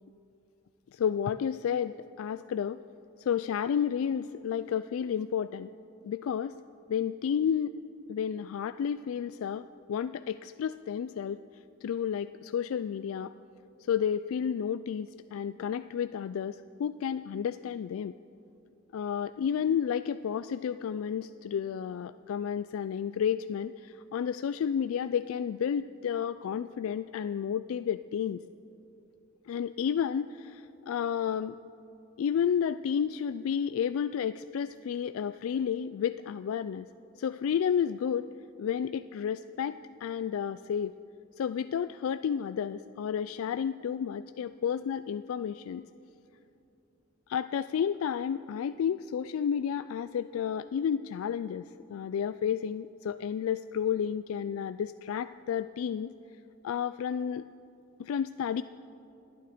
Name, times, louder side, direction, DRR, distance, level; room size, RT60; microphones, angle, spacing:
voice 1, 0.9-2.8 3.2-5.7 6.0-6.6 6.9-7.7 8.1-11.4 11.8-13.3 13.8-18.1 18.9-28.4 29.5-31.6 32.2-36.9 37.2-38.3 38.6-40.9 41.4-45.9 47.3-56.1 56.6-57.5 58.0-58.6, left 8 dB, 90° left, 13 dB, 0.3 m, -31 dB
27.5 x 9.5 x 5.0 m, 2.8 s
head